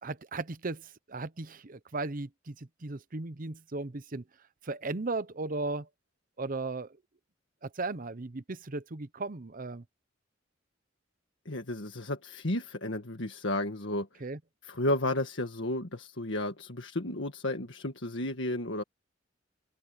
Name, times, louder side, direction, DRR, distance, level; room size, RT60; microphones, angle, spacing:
voice 1, 0.0-4.2 4.6-5.9 6.4-7.0 7.6-9.8 14.2-14.4, right 3 dB, 45° right, 0.9 m, -36 dB
voice 2, 11.5-14.1 14.6-18.8, left 1 dB, 70° left, 1.8 m, -32 dB
head